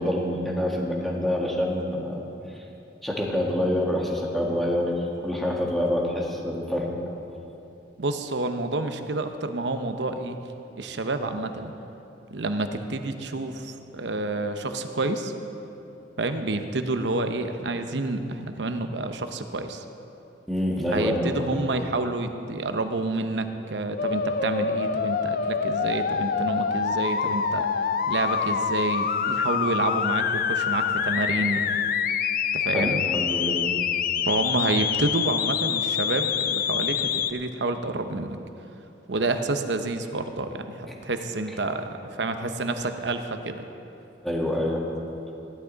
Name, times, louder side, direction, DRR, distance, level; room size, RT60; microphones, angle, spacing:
voice 1, 0.0-2.3 3.0-6.9 20.5-21.5 32.7-33.7 44.2-44.9, left 1 dB, ahead, -3 dB, 1.7 m, -26 dB
voice 2, 8.0-10.4 10.8-11.7 12.3-15.3 16.2-19.8 20.9-27.7 28.1-31.6 32.5-33.0 34.3-38.4 39.1-43.6, right 2 dB, 70° right, 7 dB, 0.8 m, -29 dB
sound 1, 24.0-37.3, left 7 dB, 50° left, 0.4 m, -26 dB
16.0 x 11.0 x 4.0 m, 2.9 s
head